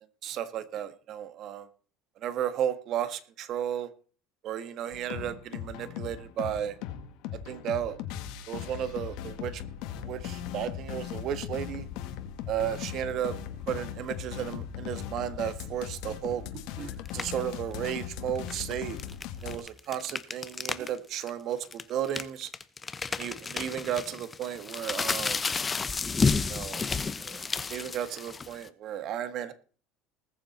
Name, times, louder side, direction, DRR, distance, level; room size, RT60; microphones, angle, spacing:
voice 1, 0.2-1.7 2.2-3.9 4.4-6.8 7.4-8.0 8.5-9.6 10.0-11.9 12.5-13.4 13.7-19.0 19.4-22.5 23.2-25.4 26.5-26.9 27.2-27.4 27.7-29.5, right 10 dB, 50° right, 1.5 m, -34 dB
sound 1, 4.9-19.6, left 10 dB, 70° left, 1.9 m, -38 dB
sound 2, 17.1-17.4 18.4-20.9 21.2-21.3 21.7-28.7, left 4 dB, 20° left, 0.9 m, -31 dB
20.0 x 7.1 x 4.3 m
supercardioid pair, 120°, 0 cm